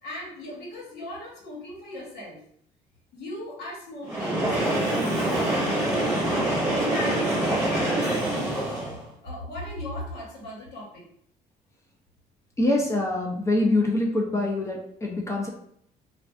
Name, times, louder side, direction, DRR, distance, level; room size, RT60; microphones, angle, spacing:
voice 1, 0.0-2.4 3.1-6.3 6.9-8.5 9.2-11.0, left 1 dB, 75° left, -4 dB, 1.1 m, -38 dB
Train, 4.0-9.1, right 1 dB, 15° right, 1.1 m, -25 dB
voice 2, 12.6-15.5, left 2 dB, 15° left, -1 dB, 0.5 m, -24 dB
2.5 x 2.2 x 2.4 m, 0.67 s
cardioid pair, 110°, 17 cm